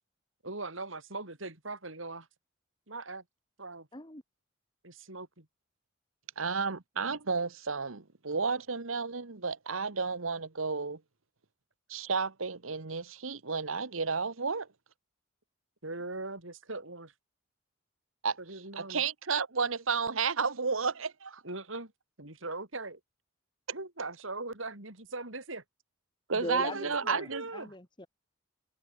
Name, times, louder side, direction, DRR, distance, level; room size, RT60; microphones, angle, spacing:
voice 1, 0.4-2.3 2.9-3.2 3.6-3.9 4.8-5.5 7.0-7.2 15.8-17.1 18.4-19.0 21.4-21.9 22.2-23.0 23.7-25.6 26.5-27.7, right 2 dB, 75° right, 5.1 m, -40 dB
voice 2, 6.4-11.0 11.9-14.7 18.2-18.4 18.8-21.4 26.3-27.4, right 5 dB, 90° right, 1.4 m, -32 dB
voice 3, 26.3-28.1, left 1 dB, 20° left, 2.6 m, -40 dB
head